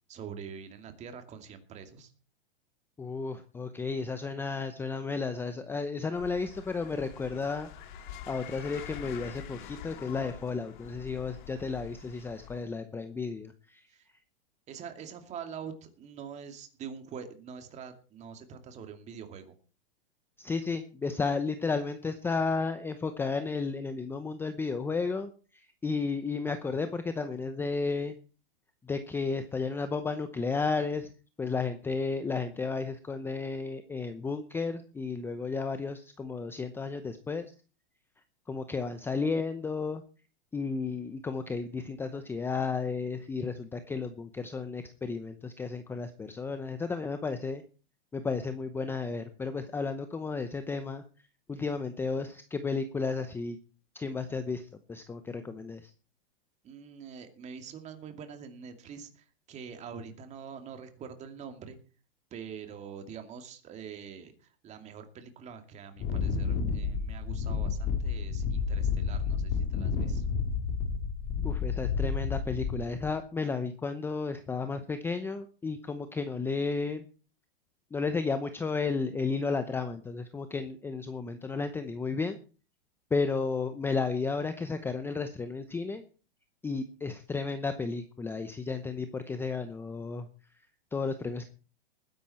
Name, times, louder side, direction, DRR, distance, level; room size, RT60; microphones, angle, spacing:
voice 1, 0.1-2.1 13.9-14.1 14.7-19.5 56.6-61.8 62.3-70.3, right 7 dB, 25° right, 7 dB, 2.5 m, -45 dB
voice 2, 3.0-7.7 8.3-13.9 20.4-28.2 28.8-31.1 31.4-37.5 38.5-40.0 40.5-47.6 48.1-51.0 51.5-53.6 53.9-55.9 71.4-77.0 77.9-82.4 83.1-86.0 86.6-91.5, left 4 dB, 10° left, 10 dB, 0.8 m, -33 dB
sound 1, 6.2-12.7, left 8 dB, 55° left, 2.5 m, -46 dB
Wind, 66.0-73.1, left 5 dB, 30° left, 2.8 m, -30 dB
20.0 x 10.5 x 4.3 m, 0.37 s
hypercardioid pair, 140°, 30 cm